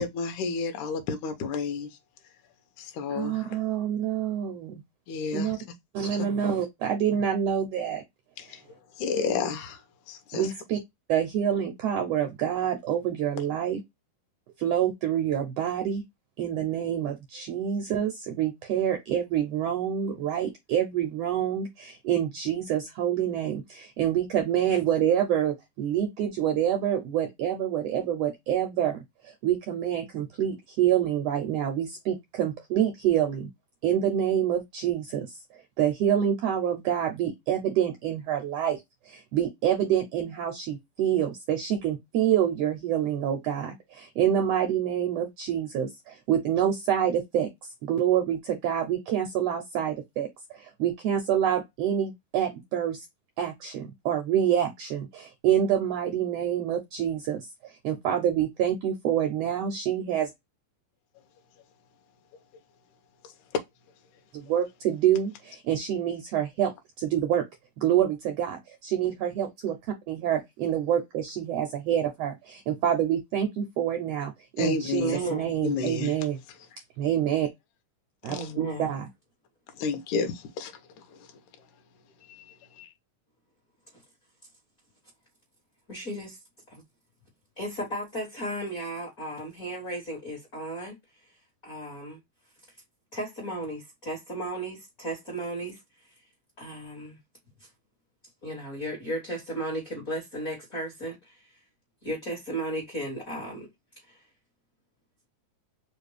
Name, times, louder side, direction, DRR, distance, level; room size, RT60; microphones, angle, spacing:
voice 1, 0.0-1.9 2.8-3.6 5.1-5.7 8.4-8.6 9.0-9.8 10.1-10.5 74.6-75.2 75.6-76.2 78.3-78.5 79.8-80.7 81.1-81.3 82.3-82.9, left 5 dB, 70° left, 2.2 m, -31 dB
voice 2, 3.1-4.8 5.3-5.6 5.9-8.0 10.3-10.8 11.1-13.8 14.6-16.0 16.4-29.0 29.2-33.5 33.8-35.4 35.8-38.8 39.1-47.5 47.8-50.3 50.5-53.0 53.4-60.3 64.3-66.7 67.0-67.4 67.8-69.8 70.1-74.3 74.6-75.0 75.3-76.4 77.0-77.5 78.2-79.0, right 10 dB, 80° right, 1.4 m, -27 dB
voice 3, 75.0-75.5 78.3-78.9 85.9-86.4 86.7-86.8 87.6-91.0 91.6-92.2 93.1-95.8 96.6-97.2 98.4-101.5 102.0-103.7 104.0-104.2, right 1 dB, 40° left, 1.3 m, -34 dB
5.0 x 2.5 x 3.2 m
omnidirectional pair, 3.8 m